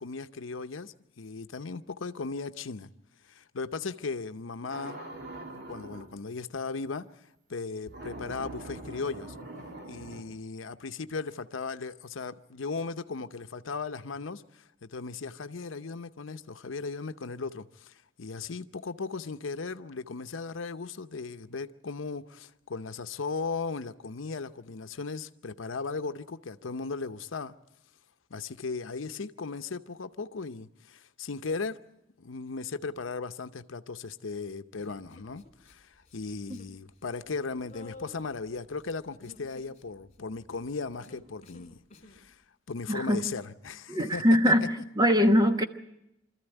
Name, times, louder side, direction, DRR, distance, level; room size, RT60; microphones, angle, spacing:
voice 1, 0.0-2.9 3.3-5.0 5.7-7.1 7.5-9.3 9.9-27.5 28.3-31.8 32.2-41.8 42.1-42.4 42.7-44.5, left 4 dB, 80° left, 0.7 m, -37 dB
sound 1, 4.7-6.1 7.9-10.2, right 1 dB, 60° right, 2.5 m, -42 dB
Human voice, 34.8-35.7 36.0-36.8 37.0-42.2, left 2 dB, 40° left, 3.0 m, -53 dB
voice 2, 42.9-43.2 43.9-44.7 45.0-45.6, equal, 20° right, 1.1 m, -22 dB
25.0 x 14.0 x 9.0 m
head